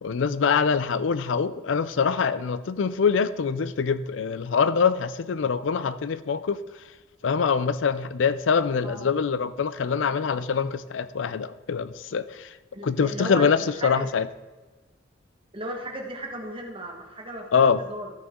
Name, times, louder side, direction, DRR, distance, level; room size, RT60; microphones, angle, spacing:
voice 1, 0.0-6.6 7.2-12.5 12.8-14.3 17.5-17.8, left 6 dB, 85° left, 15 dB, 0.4 m, -24 dB
voice 2, 12.7-14.1 15.5-18.1, right 1 dB, 30° right, 1 dB, 1.5 m, -36 dB
13.5 x 6.2 x 3.7 m, 1.3 s
head